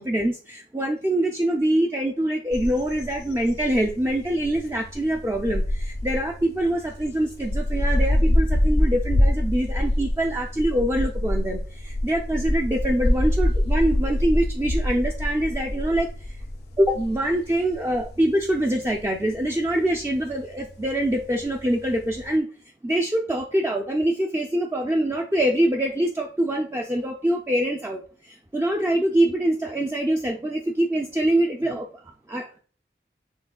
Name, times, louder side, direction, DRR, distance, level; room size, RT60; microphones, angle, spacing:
voice 1, 0.0-16.4 16.8-22.5 22.8-28.0 28.3-32.0 32.3-32.6, right 1 dB, 15° right, 2 dB, 0.3 m, -24 dB
sound 1, 2.5-22.3, left 1 dB, 65° left, 0.6 m, -25 dB
6.3 x 3.5 x 2.2 m, 0.40 s
head